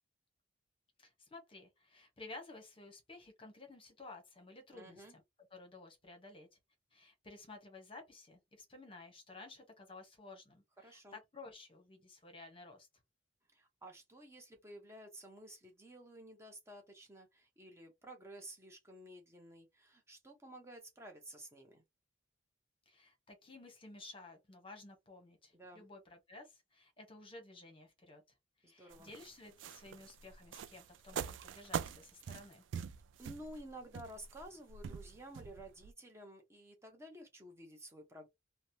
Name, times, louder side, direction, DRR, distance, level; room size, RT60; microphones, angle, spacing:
voice 1, 1.0-5.2 5.5-6.5 6.9-12.9 22.9-28.2 28.6-32.6, left 3 dB, 25° left, 0.8 m, -54 dB
voice 2, 4.7-5.1 10.8-11.2 13.5-21.8 25.5-25.8 28.6-29.1 33.2-38.3, right 1 dB, 15° right, 0.6 m, -53 dB
sound 1, 28.9-35.9, right 7 dB, 70° right, 0.3 m, -44 dB
2.9 x 2.0 x 2.7 m
head